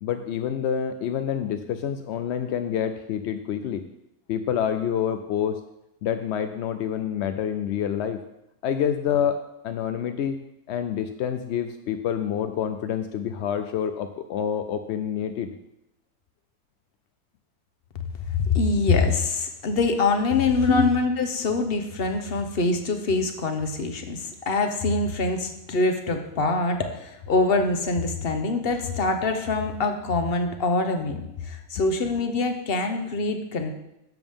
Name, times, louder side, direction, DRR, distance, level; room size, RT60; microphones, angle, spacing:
voice 1, 0.0-3.8 4.3-5.6 6.0-8.2 8.6-10.4 10.7-15.5 20.7-20.9, left 8 dB, 70° left, 8 dB, 0.6 m, -27 dB
voice 2, 18.3-33.7, left 3 dB, 45° left, 6 dB, 1.0 m, -24 dB
12.0 x 7.0 x 3.6 m, 0.86 s
omnidirectional pair, 1.6 m